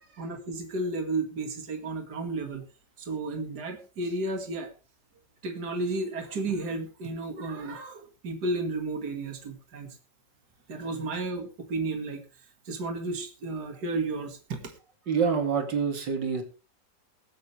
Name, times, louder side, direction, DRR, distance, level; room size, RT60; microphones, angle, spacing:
voice 1, 0.2-2.6 3.0-4.7 5.4-9.9 10.7-12.2 12.7-14.4, right 2 dB, 65° right, 5 dB, 2.6 m, -32 dB
voice 2, 15.1-16.4, right 6 dB, 90° right, 5 dB, 3.1 m, -26 dB
22.0 x 8.8 x 3.3 m, 0.32 s
omnidirectional pair, 1.9 m